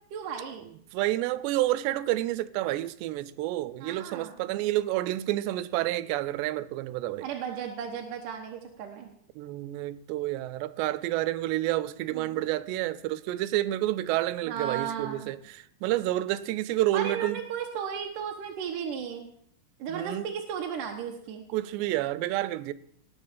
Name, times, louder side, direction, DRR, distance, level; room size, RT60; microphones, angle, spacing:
voice 1, 0.1-0.7 3.8-4.4 7.2-9.1 12.1-12.5 14.5-15.3 16.9-19.3 19.8-21.4, right 7 dB, 65° right, 2.3 m, -35 dB
voice 2, 0.9-7.3 9.4-17.4 19.9-20.3 21.5-22.7, right 15 dB, 85° right, 2.9 m, -29 dB
18.0 x 7.6 x 7.3 m
omnidirectional pair, 4.9 m